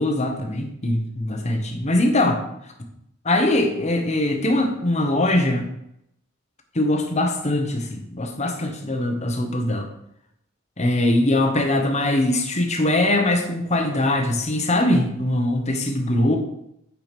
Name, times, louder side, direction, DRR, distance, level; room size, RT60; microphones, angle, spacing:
voice 1, 0.0-2.4 3.2-5.7 6.7-9.9 10.8-16.4, left 1 dB, 35° left, 4 dB, 1.3 m, -22 dB
9.2 x 5.0 x 5.2 m, 0.79 s
head